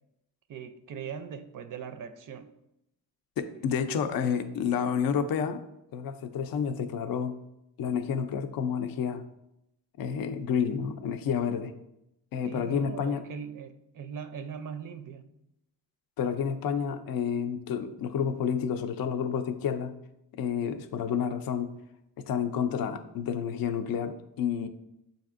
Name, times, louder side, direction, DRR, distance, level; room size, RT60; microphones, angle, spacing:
voice 1, 0.5-2.5 12.4-15.3, right 7 dB, 55° right, 9 dB, 0.4 m, -40 dB
voice 2, 3.4-5.6 5.9-7.4 7.8-9.2 10.0-11.7 12.3-13.2 16.2-19.9 20.3-21.7 22.2-24.7, left 7 dB, 60° left, 9 dB, 0.5 m, -30 dB
6.9 x 2.6 x 2.4 m, 0.84 s
cardioid pair, 80°, 40 cm